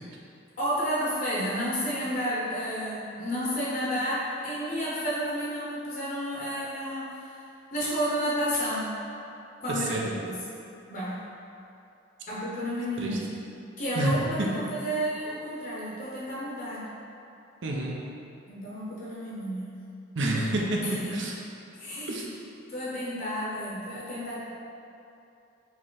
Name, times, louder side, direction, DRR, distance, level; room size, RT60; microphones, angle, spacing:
voice 1, 0.6-7.4 7.7-9.0 9.6-10.0 10.2-10.4 10.9-11.3 12.3-13.2 13.8-16.9 18.5-19.8 20.8-21.1 21.8-22.1 22.7-24.4, equal, 45° left, -7 dB, 0.7 m, -31 dB
voice 2, 9.7-10.1 13.0-13.2 14.0-14.5 17.6-18.0 20.2-21.3 22.1-22.3, right 2 dB, 65° right, -2 dB, 0.6 m, -28 dB
4.5 x 3.1 x 3.8 m, 2.7 s
head